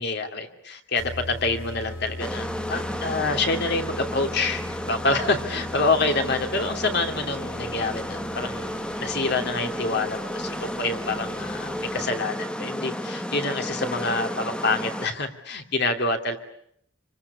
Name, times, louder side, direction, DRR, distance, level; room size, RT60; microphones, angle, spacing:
voice 1, 0.0-8.7 9.0-16.4, left 3 dB, 55° left, 5 dB, 2.8 m, -27 dB
sound 1, 1.0-12.4, left 2 dB, 75° left, 2.5 m, -40 dB
sound 2, 2.2-15.1, equal, 5° left, 1.1 m, -32 dB
27.5 x 25.5 x 8.4 m, 0.71 s
head